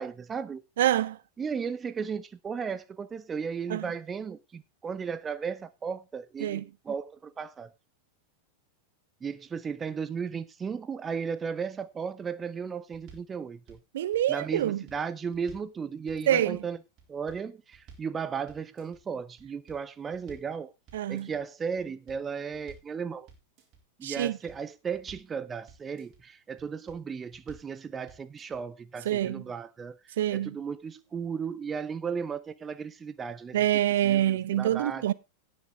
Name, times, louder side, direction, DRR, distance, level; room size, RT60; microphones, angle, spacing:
voice 1, 0.0-0.6 1.4-7.7 9.2-13.8 14.3-16.8 17.1-20.7 21.1-23.3 24.0-33.6 34.0-35.1, right 6 dB, 20° right, 0.7 m, -35 dB
voice 2, 0.8-1.2 3.7-3.9 6.4-6.6 13.9-14.8 16.3-16.6 20.9-21.3 24.0-24.4 29.1-29.4 30.2-30.6 33.5-35.1, right 12 dB, 60° right, 0.6 m, -26 dB
sound 1, 12.9-13.3 13.7-14.2 14.6-15.7 16.1-16.6 17.0-17.4 17.7-18.1 18.5-19.0 19.4-20.5 20.9-21.4 21.8-22.9 23.3-23.8 24.2-25.3 25.7-26.2 26.6-27.0 27.3-27.7 28.1-28.6, right 5 dB, 35° right, 3.7 m, -54 dB
18.0 x 6.5 x 3.3 m
figure-of-eight pair, 90°, 0 cm